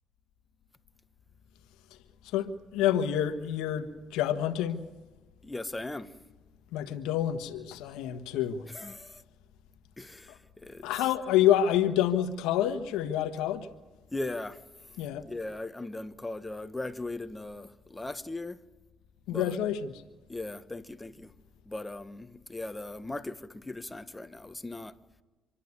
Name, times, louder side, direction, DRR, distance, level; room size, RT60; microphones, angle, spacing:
voice 1, 2.3-4.8 6.7-8.6 10.3-10.4 10.8-13.7 15.0-15.2 19.3-20.0, left 11 dB, 85° left, 1.4 m, -28 dB
voice 2, 5.4-6.1 8.7-9.2 10.0-10.3 10.6-10.9 14.1-14.6 15.2-18.6 19.3-19.6 20.3-21.3 21.7-24.9, left 2 dB, 15° left, 1.3 m, -38 dB
27.0 x 11.5 x 9.7 m
supercardioid pair, 75°, 0 cm